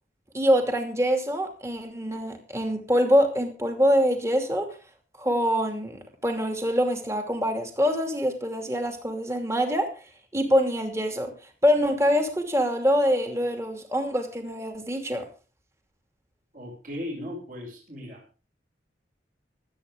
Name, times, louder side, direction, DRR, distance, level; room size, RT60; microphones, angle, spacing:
voice 1, 0.3-4.8 5.2-10.0 10.3-11.3 11.6-15.3, equal, 15° right, 4 dB, 2.6 m, -24 dB
voice 2, 16.5-18.2, left 1 dB, 50° right, -1 dB, 6.7 m, -37 dB
25.5 x 8.8 x 3.7 m, 0.34 s
head